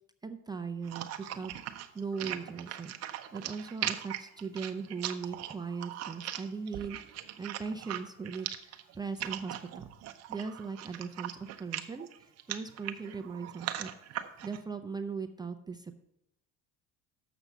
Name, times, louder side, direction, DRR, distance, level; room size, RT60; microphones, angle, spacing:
voice 1, 0.2-1.5 1.9-9.9 10.3-13.9 14.4-16.0, right 5 dB, 15° right, 6 dB, 0.4 m, -39 dB
sound 1, 0.8-14.6, right 12 dB, 55° right, 0.7 m, -40 dB
7.1 x 6.0 x 6.6 m, 0.84 s
cardioid pair, 110°, 31 cm